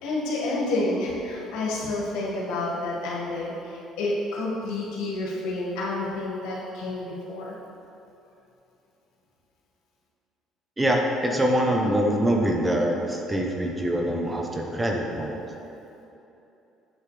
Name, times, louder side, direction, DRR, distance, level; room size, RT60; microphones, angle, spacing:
voice 1, 0.0-7.6, left 2 dB, 90° left, -5 dB, 1.7 m, -29 dB
voice 2, 10.8-15.4, equal, 15° right, 1 dB, 0.9 m, -24 dB
8.3 x 7.6 x 3.4 m, 2.9 s
cardioid pair, 100°, 0 cm